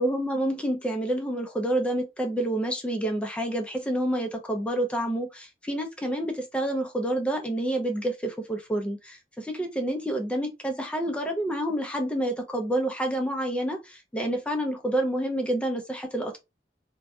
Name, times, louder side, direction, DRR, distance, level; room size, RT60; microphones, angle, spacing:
voice 1, 0.0-16.4, right 1 dB, 5° left, 0.4 m, -28 dB
2.6 x 2.1 x 2.2 m
head